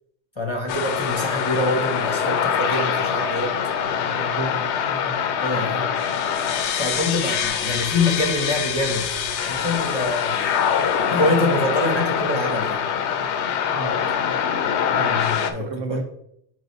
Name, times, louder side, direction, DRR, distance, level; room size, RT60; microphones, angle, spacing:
voice 1, 0.4-3.5 5.4-5.9 6.8-9.2 9.4-12.8 14.9-16.0, left 2 dB, 30° left, 1 dB, 0.6 m, -25 dB
sound 1, 0.7-15.5, left 8 dB, 65° left, 0.8 m, -24 dB
voice 2, 4.0-5.2 13.7-14.2 14.9-15.1 15.6-16.0, right 3 dB, 80° right, 6 dB, 1.1 m, -33 dB
4.9 x 4.7 x 4.0 m, 0.75 s
omnidirectional pair, 1.3 m